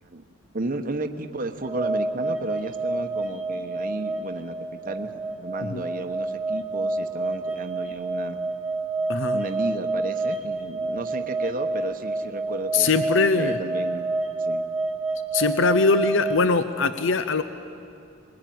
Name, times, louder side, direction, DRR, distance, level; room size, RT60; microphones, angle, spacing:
voice 1, 0.5-8.4 9.3-13.0 13.3-14.1 14.4-14.7, right 2 dB, 40° right, 6 dB, 1.0 m, -33 dB
sound 1, 1.6-16.4, right 2 dB, 10° right, 1.3 m, -29 dB
voice 2, 12.7-13.6 15.3-17.4, left 4 dB, 65° left, 11 dB, 0.8 m, -21 dB
21.5 x 20.5 x 9.3 m, 2.6 s
head